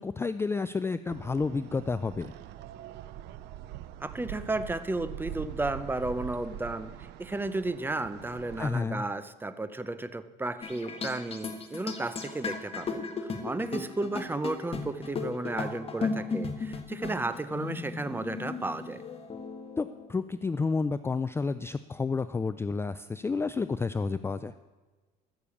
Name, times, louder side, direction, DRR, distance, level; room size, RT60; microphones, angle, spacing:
voice 1, 0.0-2.3 8.6-9.0 19.8-24.5, left 4 dB, 15° left, 12 dB, 0.3 m, -30 dB
sound 1, 1.1-8.7, right 12 dB, 85° right, 0.6 m, -43 dB
voice 2, 4.0-19.0, right 2 dB, 10° right, 13 dB, 0.7 m, -33 dB
sound 2, 10.6-20.1, left 4 dB, 35° left, 1.5 m, -36 dB
14.0 x 6.9 x 7.1 m, 1.3 s
cardioid pair, 110°, 17 cm